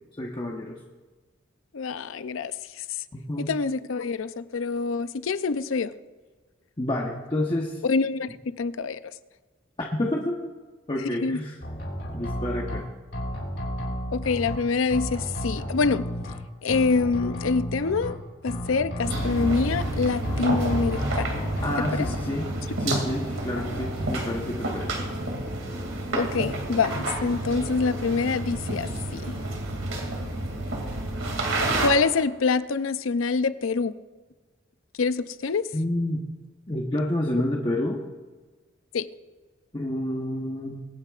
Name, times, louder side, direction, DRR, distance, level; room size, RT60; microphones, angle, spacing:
voice 1, 0.2-0.8 3.1-3.5 6.8-7.8 9.8-10.4 10.9-11.6 12.1-12.8 21.6-22.5 22.8-25.1 35.7-36.2 36.7-38.0 39.7-40.9, left 1 dB, 25° left, -1 dB, 1.0 m, -29 dB
voice 2, 1.7-2.5 2.8-2.9 3.4-5.9 7.8-9.1 11.2-11.4 14.1-16.0 16.6-18.2 18.4-21.3 22.0-22.1 26.1-29.4 31.8-33.9 35.0-35.7 38.9-39.1, left 4 dB, 85° left, 13 dB, 0.5 m, -26 dB
sound 1, 11.6-12.8 13.1-14.6 14.9-16.3 16.7-18.1 18.5-19.9 20.2-21.7 22.0-22.1, equal, 55° left, 4.7 m, -32 dB
sound 2, 19.0-31.9, right 2 dB, 85° right, 2.5 m, -30 dB
24.0 x 9.6 x 2.5 m, 1.3 s
head